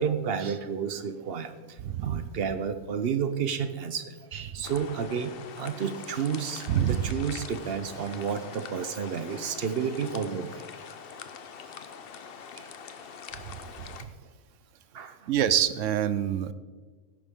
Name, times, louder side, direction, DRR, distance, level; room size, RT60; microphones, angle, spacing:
voice 1, 0.0-1.5 2.0-5.3 5.6-10.6 12.6-12.7 14.9-15.3, right 7 dB, 55° right, 10 dB, 0.9 m, -31 dB
voice 2, 1.8-2.3 6.7-7.1 13.5-13.9 15.3-16.5, right 10 dB, 75° right, 14 dB, 1.0 m, -27 dB
sound 1, 4.6-14.0, left 7 dB, 55° left, 0.8 m, -44 dB
16.5 x 10.0 x 3.7 m, 1.4 s
omnidirectional pair, 1.3 m